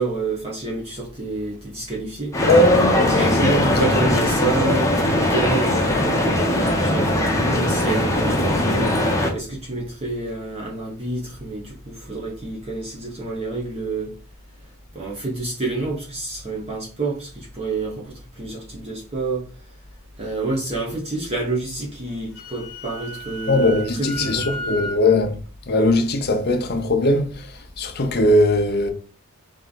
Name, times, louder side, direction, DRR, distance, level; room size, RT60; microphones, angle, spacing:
voice 1, 0.0-2.5 3.1-4.9 5.3-9.1 9.3-14.1 14.9-19.5 20.2-24.8, right 2 dB, 30° right, 0.9 m, -28 dB
sound 1, 2.3-9.3, left 1 dB, 15° left, 0.8 m, -20 dB
voice 2, 2.4-4.1 23.5-25.4 25.7-27.5 27.8-28.9, left 1 dB, 45° left, 0.7 m, -19 dB
Wind instrument woodwind instrument, 22.1-25.0, equal, 80° left, 1.1 m, -34 dB
3.5 x 3.3 x 4.0 m
head